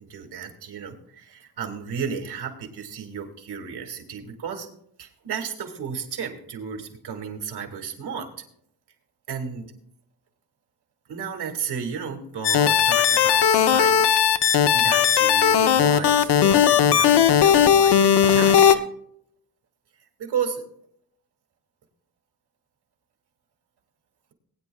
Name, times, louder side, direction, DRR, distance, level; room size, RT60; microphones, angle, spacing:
voice 1, 0.0-4.7 5.0-8.3 9.3-9.7 11.1-14.1 14.5-18.8 20.2-20.6, right 7 dB, 80° right, 4 dB, 2.4 m, -33 dB
sound 1, 12.4-18.8, left 8 dB, 85° left, 0.9 m, -17 dB
20.5 x 9.8 x 2.3 m, 0.69 s
wide cardioid pair, 155°, 39 cm